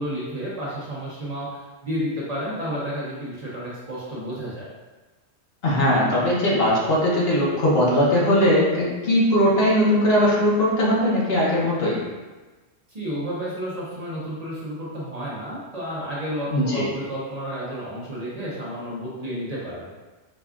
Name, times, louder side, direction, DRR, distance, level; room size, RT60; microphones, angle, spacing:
voice 1, 0.0-4.7 12.9-19.9, equal, 40° right, -8 dB, 0.8 m, -31 dB
voice 2, 5.6-12.0 16.5-16.8, left 1 dB, 65° left, -5 dB, 1.1 m, -20 dB
4.9 x 2.3 x 2.4 m, 1.2 s
omnidirectional pair, 1.1 m